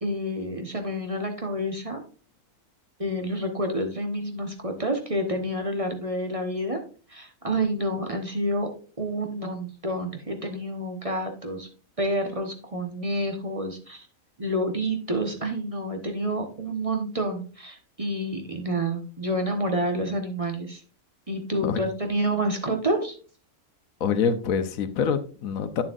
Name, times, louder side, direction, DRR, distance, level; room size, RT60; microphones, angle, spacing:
voice 1, 0.0-2.0 3.0-6.8 7.1-8.7 9.0-11.7 12.0-14.1 14.4-20.8 21.3-23.2, right 1 dB, 25° right, 1.2 m, -28 dB
voice 2, 24.0-25.8, left 6 dB, 85° left, 1.2 m, -25 dB
9.0 x 7.4 x 2.5 m
omnidirectional pair, 1.4 m